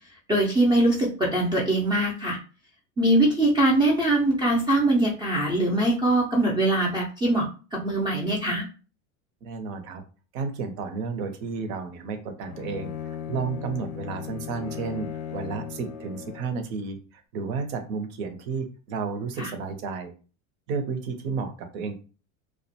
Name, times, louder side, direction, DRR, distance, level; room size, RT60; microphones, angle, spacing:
voice 1, 0.3-2.4 3.0-8.6 19.4-19.5, right 1 dB, 10° right, -2 dB, 0.3 m, -22 dB
voice 2, 9.4-10.0 10.3-20.1 20.7-22.0, right 5 dB, 70° right, 7 dB, 0.7 m, -32 dB
Bowed string instrument, 12.4-16.7, left 9 dB, 90° left, 0.5 m, -37 dB
2.3 x 2.1 x 2.7 m, 0.36 s
supercardioid pair, 115°, 42 cm